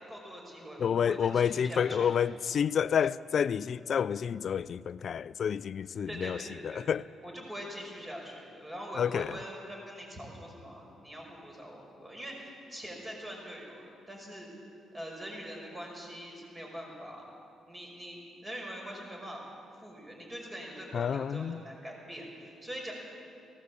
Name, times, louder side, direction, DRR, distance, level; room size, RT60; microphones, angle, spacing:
voice 1, 0.1-2.3 6.1-6.9 7.2-14.5 14.9-17.3 17.7-19.4 19.8-22.9, equal, 20° right, 5.4 m, -43 dB
voice 2, 0.8-6.4 6.8-7.0 9.0-9.3 20.9-21.6, left 8 dB, 55° left, 0.5 m, -29 dB
18.5 x 17.0 x 8.4 m
cardioid pair, 90°, 0 cm